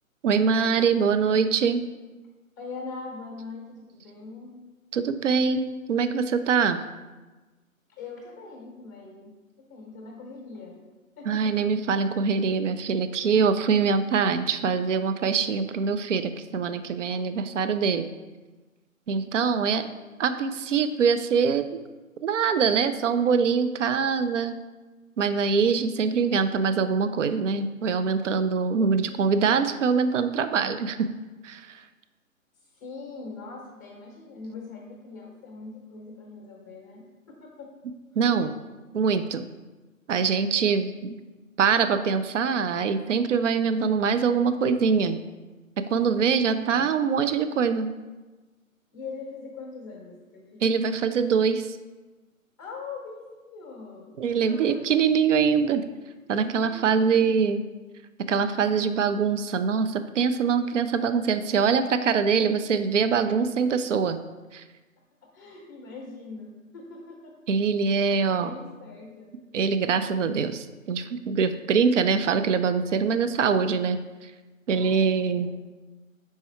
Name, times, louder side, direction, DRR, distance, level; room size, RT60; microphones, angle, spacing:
voice 1, 0.2-1.8 4.9-6.8 11.3-18.1 19.1-19.9 20.2-21.8 22.2-24.6 25.2-31.1 31.4-31.8 38.2-38.5 38.9-39.5 40.1-41.2 41.6-45.2 45.8-47.9 50.6-51.7 54.2-55.8 56.3-57.6 58.2-64.2 64.5-64.6 67.5-68.5 69.5-74.0 74.7-75.5, right 6 dB, 60° right, 10 dB, 0.5 m, -24 dB
voice 2, 2.6-4.6 8.0-10.8 11.2-11.5 32.7-37.7 46.2-46.9 48.9-50.8 52.6-54.8 56.1-56.2 56.6-57.3 57.6-57.8 65.3-67.3 68.4-69.3 74.7-75.5, left 4 dB, 15° left, -1 dB, 0.7 m, -42 dB
5.4 x 4.7 x 4.3 m, 1.2 s
figure-of-eight pair, 145°, 42 cm